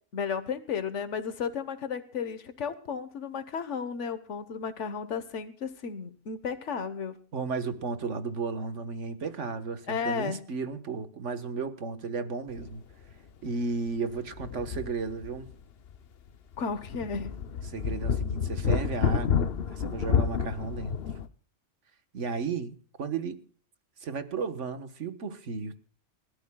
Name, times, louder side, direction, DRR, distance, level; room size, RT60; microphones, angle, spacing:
voice 1, 0.1-7.2 9.9-10.4 16.6-17.4, left 6 dB, 80° left, 11 dB, 1.5 m, -33 dB
voice 2, 7.3-12.8 13.4-15.5 17.6-21.0 22.1-23.4 24.0-25.8, right 4 dB, 85° right, 10 dB, 1.7 m, -34 dB
sound 1, 12.6-12.7 13.1-13.2 14.1-15.5 15.9-16.0 16.5-21.3, left 6 dB, 60° left, 1.0 m, -30 dB
29.0 x 13.0 x 2.3 m, 0.42 s
omnidirectional pair, 1.2 m